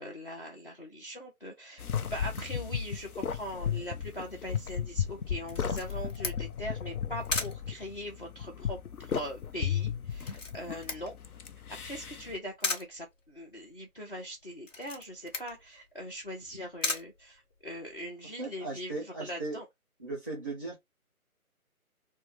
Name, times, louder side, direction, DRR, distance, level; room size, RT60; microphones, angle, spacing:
voice 1, 0.0-11.1 11.8-19.7, equal, 40° left, 0.6 m, -41 dB
sound 1, 1.8-12.4, left 8 dB, 80° left, 0.7 m, -35 dB
Camera, 5.5-18.0, left 3 dB, 55° left, 1.2 m, -39 dB
voice 2, 18.4-19.6 20.0-20.8, right 3 dB, 15° left, 0.8 m, -37 dB
3.3 x 2.1 x 3.1 m
figure-of-eight pair, 165°, 44 cm